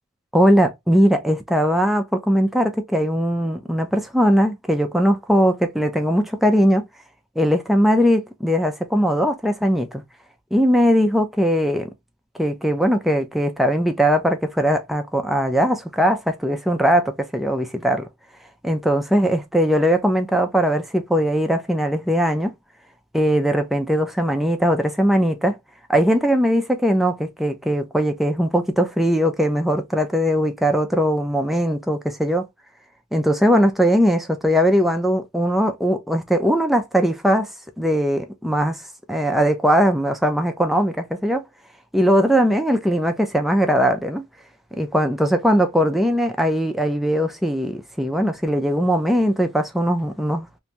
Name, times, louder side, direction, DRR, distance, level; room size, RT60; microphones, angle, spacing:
voice 1, 0.3-6.9 7.4-10.0 10.5-11.9 12.4-18.1 18.6-22.5 23.1-25.6 25.9-32.5 33.1-37.5 37.8-38.8 39.1-41.4 41.9-44.2 44.8-50.5, equal, ahead, 0.4 m, -20 dB
2.6 x 2.3 x 2.9 m
head